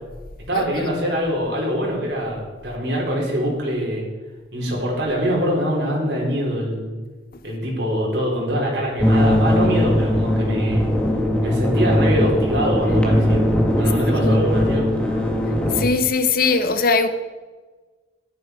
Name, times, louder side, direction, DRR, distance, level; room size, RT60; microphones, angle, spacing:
voice 1, 0.5-4.1 4.5-6.9 7.4-10.9 11.4-13.4 13.8-15.2, equal, 60° right, 4.6 m, -23 dB
sound 1, 9.0-15.8, equal, 5° left, 1.7 m, -19 dB
voice 2, 15.7-17.1, left 4 dB, 50° left, 0.8 m, -20 dB
13.0 x 11.0 x 4.8 m
head